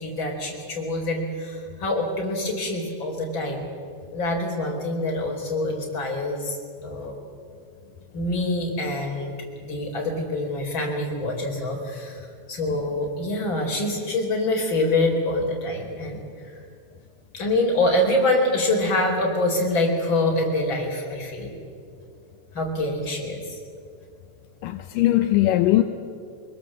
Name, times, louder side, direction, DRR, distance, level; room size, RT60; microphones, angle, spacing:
voice 1, 0.0-3.7 4.1-6.6 6.8-7.2 8.1-9.3 9.6-16.2 16.5-16.6 17.3-21.6 22.5-23.6, left 1 dB, 30° left, 0 dB, 4.9 m, -25 dB
voice 2, 24.6-25.8, left 15 dB, 75° left, 7 dB, 2.0 m, -19 dB
24.5 x 22.0 x 7.6 m, 2.2 s
omnidirectional pair, 4.7 m